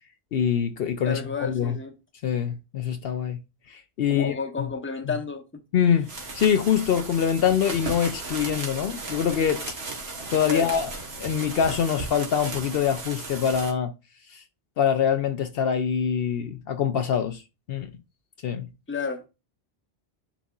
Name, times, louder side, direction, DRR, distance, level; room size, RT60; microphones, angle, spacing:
voice 1, 0.3-1.8 2.2-3.4 3.7-4.7 5.1-5.2 5.7-6.1 6.3-9.8 10.3-10.9 11.2-13.9 14.3-14.4 14.8-17.4 17.7-17.9 18.4-18.7, left 8 dB, 65° left, 0.8 m, -24 dB
voice 2, 1.1-1.9 4.1-5.4 5.8-5.9 10.5-10.7 18.9-19.3, left 5 dB, 10° left, 0.8 m, -31 dB
sound 1, 6.0-13.7, right 3 dB, 70° right, 1.7 m, -35 dB
10.0 x 4.1 x 2.4 m
omnidirectional pair, 1.1 m